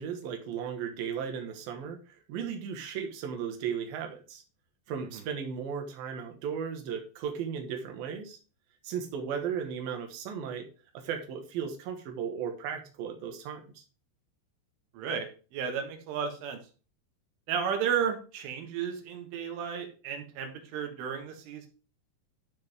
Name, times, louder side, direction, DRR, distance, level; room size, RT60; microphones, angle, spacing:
voice 1, 0.0-4.4 4.9-8.4 8.8-10.7 10.9-13.8, right 7 dB, 60° right, 4 dB, 2.8 m, -36 dB
voice 2, 14.9-16.6 17.5-21.7, right 7 dB, 85° right, 4 dB, 4.0 m, -33 dB
12.5 x 5.8 x 3.6 m, 0.35 s
omnidirectional pair, 5.5 m